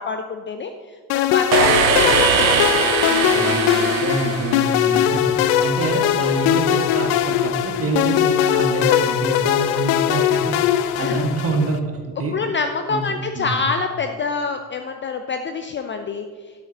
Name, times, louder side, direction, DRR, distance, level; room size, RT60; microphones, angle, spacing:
voice 1, 0.0-2.3 11.0-11.3 12.2-16.2, left 4 dB, 25° left, 7 dB, 0.6 m, -26 dB
sound 1, 1.1-11.8, left 11 dB, 55° left, 0.7 m, -20 dB
sound 2, 1.5-5.3, right 7 dB, 85° right, 0.7 m, -21 dB
voice 2, 3.3-10.6 11.0-12.4 12.9-13.0 13.3-13.5, right 2 dB, 25° right, 2 dB, 2.0 m, -26 dB
12.5 x 11.5 x 2.9 m, 1.5 s
figure-of-eight pair, 60°, 50 cm